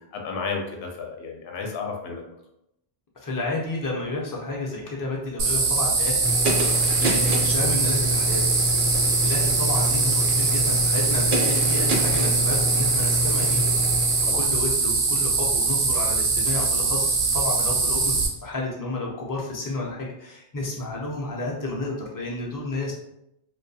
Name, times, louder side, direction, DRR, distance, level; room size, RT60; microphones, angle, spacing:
voice 1, 0.1-2.2 8.9-9.1 14.3-14.4, left 4 dB, 75° left, 1 dB, 0.8 m, -32 dB
voice 2, 3.2-6.3 6.7-8.4 8.9-13.8 14.3-18.1 18.4-22.9, left 2 dB, 35° left, -2 dB, 0.3 m, -31 dB
sound 1, 5.4-18.3, right 4 dB, 85° right, 0.9 m, -22 dB
sound 2, 6.2-14.3, equal, 60° right, 0.7 m, -27 dB
2.6 x 2.2 x 2.6 m, 0.81 s
omnidirectional pair, 1.1 m